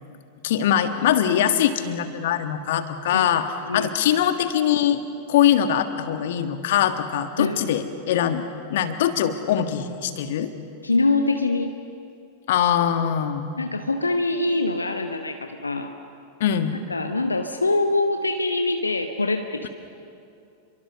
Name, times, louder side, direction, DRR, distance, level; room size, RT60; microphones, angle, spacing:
voice 1, 0.4-3.5 3.7-5.0 5.3-8.4 8.7-10.5 12.5-13.5 16.4-16.8 19.6-19.7, left 10 dB, 55° left, 9 dB, 1.6 m, -22 dB
voice 2, 7.4-7.9 10.8-11.7 13.6-15.9 16.9-19.7, left 2 dB, 80° left, 6 dB, 1.0 m, -24 dB
30.0 x 23.5 x 6.8 m, 2.6 s
figure-of-eight pair, 90°, 0 cm